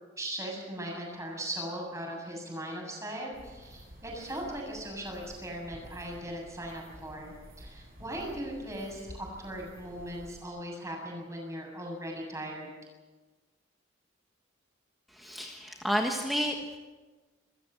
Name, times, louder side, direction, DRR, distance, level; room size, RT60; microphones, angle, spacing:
voice 1, 0.2-12.7, right 1 dB, 15° right, 0 dB, 7.2 m, -39 dB
sound 1, 3.3-10.4, equal, 50° right, 7.7 m, -51 dB
voice 2, 15.2-16.8, equal, ahead, 1 dB, 1.5 m, -31 dB
25.5 x 15.0 x 7.7 m, 1.3 s
head